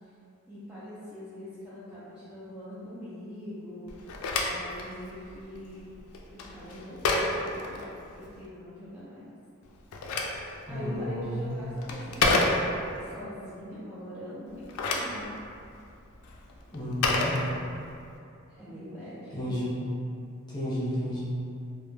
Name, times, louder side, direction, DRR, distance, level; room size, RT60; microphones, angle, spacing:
voice 1, 0.5-3.9 4.5-5.9 6.3-7.8 8.1-9.3 10.7-12.6 13.0-15.3 18.6-19.5, equal, 5° right, -13 dB, 0.4 m, -42 dB
Telephone, 3.9-8.4 9.6-13.0 14.5-18.1, left 2 dB, 90° left, 0.3 m, -31 dB
voice 2, 10.7-11.5 16.7-17.4 19.3-19.8 20.5-21.2, equal, 20° left, -10 dB, 0.8 m, -32 dB
2.1 x 2.0 x 3.0 m, 2.5 s
head